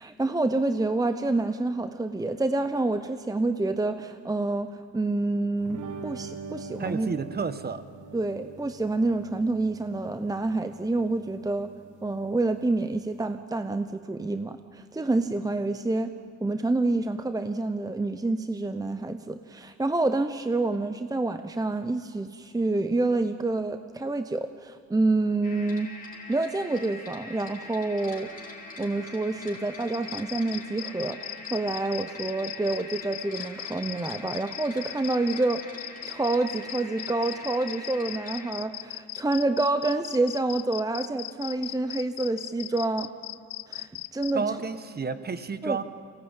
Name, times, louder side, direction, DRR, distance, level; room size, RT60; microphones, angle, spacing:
voice 1, 0.0-7.1 8.1-11.7 12.0-16.1 16.4-25.9 26.3-28.3 28.8-35.6 36.1-43.1 43.7-44.4 45.6-45.8, right 2 dB, 10° right, 9 dB, 0.8 m, -28 dB
sound 1, 5.6-13.3, right 5 dB, 80° right, 1.4 m, -44 dB
voice 2, 6.8-7.8 44.3-45.8, right 5 dB, 30° right, 12 dB, 1.2 m, -31 dB
sound 2, 25.4-38.5, left 2 dB, 30° left, 4.5 m, -43 dB
sound 3, 29.9-44.3, left 18 dB, 85° left, 0.5 m, -38 dB
23.5 x 17.5 x 9.0 m, 2.2 s
cardioid pair, 90°, 30 cm